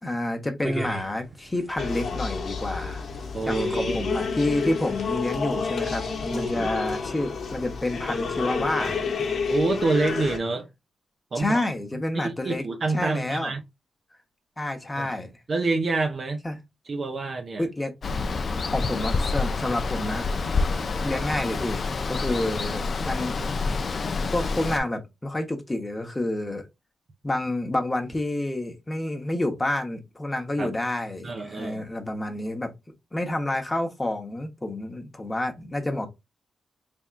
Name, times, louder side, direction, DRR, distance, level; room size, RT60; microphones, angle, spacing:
voice 1, 0.0-3.1 3.5-9.0 11.3-12.7 12.9-13.5 14.6-15.3 16.4-16.6 17.6-17.9 18.7-20.4 21.0-23.3 23.8-24.0 24.3-26.7 27.2-32.7 33.1-36.1, left 1 dB, 15° left, 0.9 m, -29 dB
sound 1, 0.6-6.3, right 2 dB, 20° right, 1.0 m, -41 dB
sound 2, 1.8-10.4, left 5 dB, 60° left, 0.8 m, -29 dB
voice 2, 3.3-4.1 6.3-6.7 9.5-10.7 11.3-13.6 15.0-15.1 15.5-16.4 16.9-17.7 30.6-30.7 31.2-31.8, right 3 dB, 45° right, 0.7 m, -27 dB
Water, 18.0-24.8, left 4 dB, 45° left, 0.4 m, -27 dB
4.2 x 3.5 x 2.4 m
cardioid pair, 100°, 0 cm